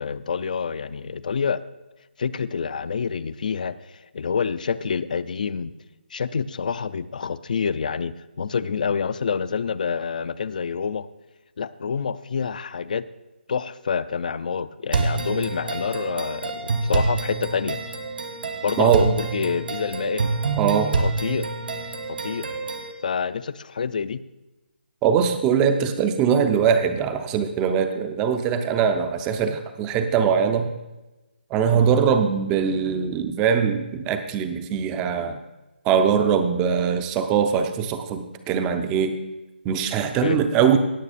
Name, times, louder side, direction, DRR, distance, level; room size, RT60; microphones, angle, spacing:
voice 1, 0.0-1.6 2.2-3.7 4.1-5.7 6.1-11.1 11.6-13.1 13.5-17.8 18.6-20.3 20.9-21.5 22.1-22.5 23.0-24.2 31.7-31.9 40.2-40.4, left 6 dB, 45° left, 16 dB, 0.5 m, -27 dB
sound 1, 14.9-22.9, right 3 dB, 60° right, 1.4 m, -27 dB
voice 2, 20.6-20.9 25.0-30.7 31.5-35.4 35.8-39.2 39.6-40.8, right 7 dB, 10° right, 8 dB, 0.5 m, -21 dB
17.5 x 6.0 x 4.2 m, 1.1 s
hypercardioid pair, 165°, 6 cm